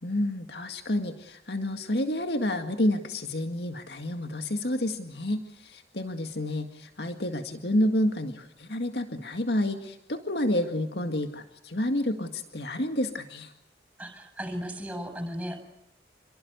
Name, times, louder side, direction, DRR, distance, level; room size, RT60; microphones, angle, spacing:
voice 1, 0.0-13.5, left 1 dB, 75° left, 6 dB, 2.0 m, -29 dB
voice 2, 14.0-15.6, equal, 5° right, 7 dB, 7.7 m, -35 dB
28.5 x 22.5 x 8.1 m, 0.80 s
head